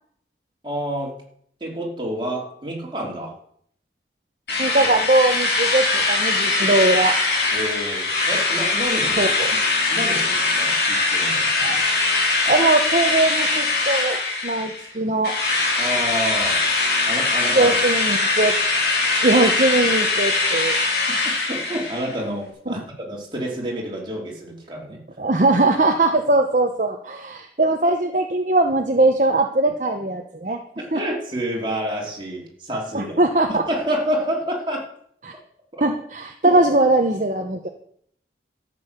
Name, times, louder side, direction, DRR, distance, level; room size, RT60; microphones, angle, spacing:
voice 1, 0.6-1.2 1.6-3.3 7.5-9.3 9.9-11.5 15.8-16.6 17.0-17.7 21.1-25.0 30.8-33.2 33.5-34.8 35.7-35.9 36.4-36.6, equal, 25° right, -2 dB, 3.1 m, -29 dB
Drill, 4.5-14.9 15.2-22.1, left 3 dB, 65° left, 3.2 m, -21 dB
voice 2, 4.6-7.2 9.2-9.5 11.6-11.8 12.5-15.4 17.5-18.5 19.2-20.8 22.7-22.8 25.2-30.6 30.9-31.0 32.9-33.6 35.2-35.3 35.8-37.7, right 2 dB, 45° right, 4 dB, 1.0 m, -20 dB
13.0 x 7.7 x 6.7 m, 0.66 s
head